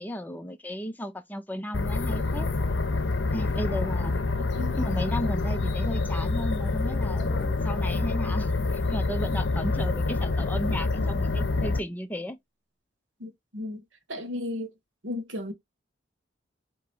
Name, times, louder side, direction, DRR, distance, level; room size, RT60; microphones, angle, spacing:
voice 1, 0.0-2.5 3.3-4.2 4.7-12.4, equal, 10° left, 0.5 m, -34 dB
sound 1, 1.7-11.8, left 3 dB, 75° left, 0.7 m, -27 dB
voice 2, 4.4-4.7 13.2-13.8 14.1-14.7 15.0-15.5, left 2 dB, 90° right, 1.4 m, -34 dB
3.6 x 3.0 x 4.5 m
head